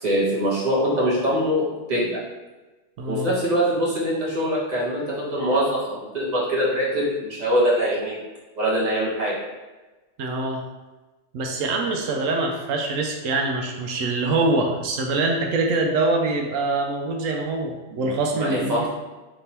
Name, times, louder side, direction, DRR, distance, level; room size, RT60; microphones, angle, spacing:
voice 1, 0.0-2.2 3.1-8.2 8.6-9.4 17.9-18.0 18.3-18.9, equal, 35° right, -6 dB, 1.2 m, -23 dB
voice 2, 3.0-3.3 10.2-10.6 11.3-18.9, right 2 dB, 90° right, 2 dB, 1.0 m, -24 dB
3.6 x 2.9 x 4.2 m, 1.2 s
omnidirectional pair, 1.3 m